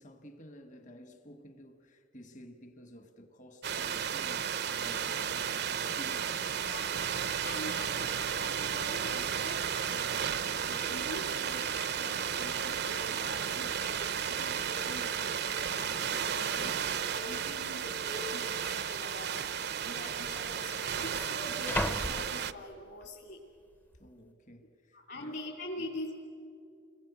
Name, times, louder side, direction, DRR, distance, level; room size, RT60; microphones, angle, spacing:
voice 1, 0.0-6.7 20.0-20.4 24.0-25.4 25.8-25.9, equal, 40° left, 1.4 m, -52 dB
sound 1, 3.6-22.5, right 8 dB, 55° right, 0.7 m, -33 dB
voice 2, 6.6-10.3 10.7-19.4 19.8-23.4 24.9-26.1, left 1 dB, 60° left, 2.9 m, -44 dB
sound 2, 15.7-15.8 16.6-17.1 17.4-17.5 18.4-18.5 19.5-19.6 19.8-23.1 23.6-24.0, left 1 dB, 10° left, 0.7 m, -39 dB
30.0 x 21.5 x 8.2 m
head